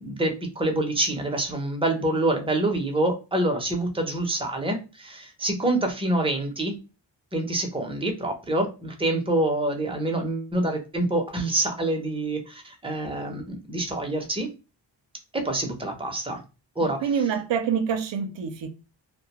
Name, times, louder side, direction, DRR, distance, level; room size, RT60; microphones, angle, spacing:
voice 1, 0.0-6.8 7.3-14.5 15.3-16.4 16.8-17.1, right 1 dB, 10° right, 0.6 m, -26 dB
voice 2, 17.0-18.7, right 7 dB, 75° right, 0.6 m, -26 dB
2.2 x 2.1 x 2.8 m
wide cardioid pair, 90°, 45 cm